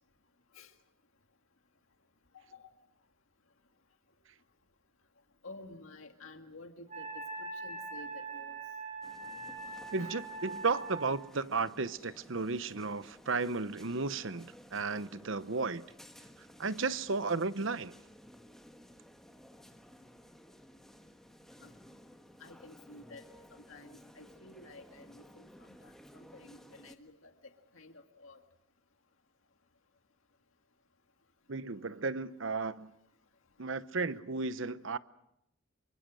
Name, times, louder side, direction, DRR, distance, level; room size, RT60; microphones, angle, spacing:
voice 1, 2.3-2.7 5.4-8.6 9.6-10.1 12.0-12.1 15.5-15.7 21.6-21.7 22.4-23.2 23.5-28.4, left 2 dB, 75° left, 1.9 m, -52 dB
Wind instrument woodwind instrument, 6.9-11.2, right 3 dB, 35° right, 7.2 m, -42 dB
sound 1, 9.0-26.9, equal, ahead, 1.4 m, -56 dB
voice 2, 9.9-15.8 16.6-17.9 31.5-32.9 33.6-35.0, right 4 dB, 65° right, 0.9 m, -34 dB
27.0 x 24.0 x 6.3 m
head